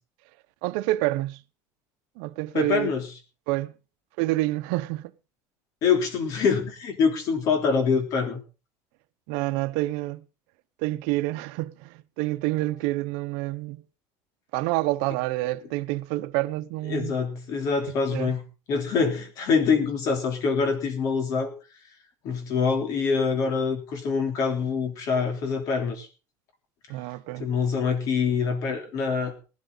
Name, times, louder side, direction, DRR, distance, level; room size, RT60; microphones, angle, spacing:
voice 1, 0.6-1.4 2.2-2.9 3.5-3.7 4.2-5.1 9.3-10.2 10.8-13.8 14.5-17.2 17.9-18.3 26.9-27.5, right 18 dB, 75° right, 0.9 m, -28 dB
voice 2, 2.5-3.1 5.8-8.4 16.9-18.4 18.7-21.5 22.2-26.1 27.4-29.3, left 5 dB, 50° left, 3.4 m, -25 dB
18.0 x 12.5 x 3.9 m
cardioid pair, 150°, 8 cm